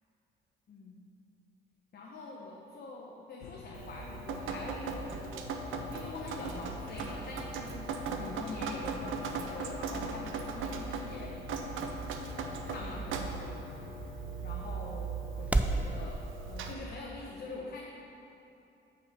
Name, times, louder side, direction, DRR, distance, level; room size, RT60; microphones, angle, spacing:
voice 1, 0.7-1.1 1.9-7.9 8.1-11.3 12.3-13.8 14.4-17.8, left 3 dB, 50° left, -3 dB, 1.1 m, -45 dB
sound 1, 3.4-16.1, left 8 dB, 80° left, 0.4 m, -49 dB
Drip, 3.7-16.7, right 4 dB, 85° right, 0.7 m, -38 dB
sound 2, 9.6-15.9, right 2 dB, 5° right, 0.4 m, -38 dB
8.5 x 5.6 x 5.5 m, 2.9 s
cardioid pair, 90°, 20 cm